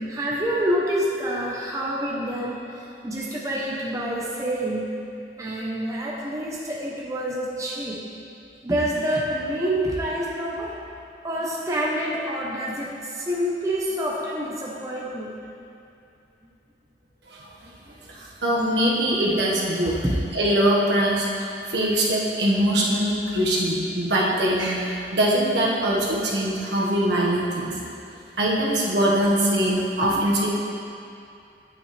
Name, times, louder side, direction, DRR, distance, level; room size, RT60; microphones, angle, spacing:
voice 1, 0.0-5.0 5.4-8.0 8.6-10.7 11.2-15.3 17.6-17.8 20.0-20.2 30.1-30.3, equal, 20° right, -5 dB, 0.8 m, -27 dB
voice 2, 18.1-19.9 20.3-27.8 28.4-30.5, right 1 dB, 75° right, -4 dB, 1.5 m, -22 dB
9.1 x 9.0 x 3.3 m, 2.6 s
head